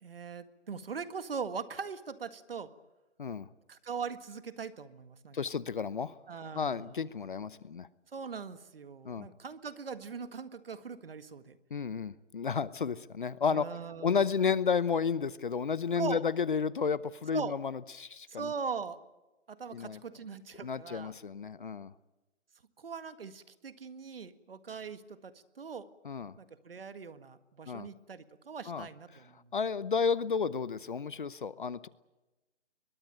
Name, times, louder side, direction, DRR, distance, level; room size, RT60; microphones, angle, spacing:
voice 1, 0.0-2.7 3.7-5.4 6.3-7.0 8.1-11.6 13.5-14.2 16.0-16.2 17.3-17.5 18.3-19.0 19.5-21.1 22.8-25.9 26.4-29.5, right 5 dB, 50° right, 12 dB, 1.8 m, -41 dB
voice 2, 5.3-6.2 6.5-7.9 9.0-9.3 11.7-13.6 14.0-18.5 19.7-20.0 20.6-21.9 26.0-26.3 27.7-27.9 28.7-28.9 29.5-31.9, left 6 dB, 45° left, 18 dB, 0.9 m, -32 dB
22.5 x 21.5 x 9.0 m, 1.1 s
hypercardioid pair, 170°, 36 cm